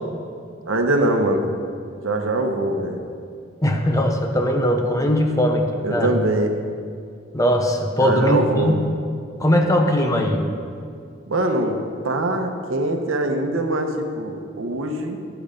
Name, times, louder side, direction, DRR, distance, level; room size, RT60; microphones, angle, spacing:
voice 1, 0.6-1.5 2.0-3.0 5.8-6.5 8.0-8.7 11.3-11.8 12.0-15.2, right 1 dB, 85° right, 4 dB, 1.0 m, -22 dB
voice 2, 3.6-6.1 7.3-8.9 9.4-10.4, equal, 15° left, 3 dB, 0.8 m, -20 dB
10.5 x 6.9 x 5.1 m, 2.3 s
head